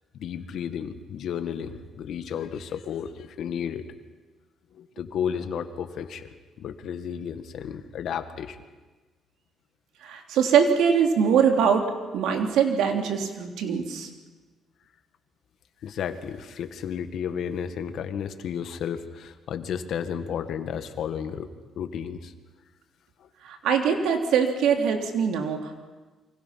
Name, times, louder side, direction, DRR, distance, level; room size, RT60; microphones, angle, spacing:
voice 1, 0.1-3.9 4.7-6.3 6.6-8.6 15.8-21.5 21.8-22.3 23.2-23.3, left 8 dB, 70° left, 9 dB, 1.8 m, -33 dB
voice 2, 10.0-14.1 23.4-25.8, right 7 dB, 85° right, 4 dB, 3.1 m, -23 dB
28.5 x 24.5 x 5.9 m, 1.3 s
cardioid pair, 90°, 0 cm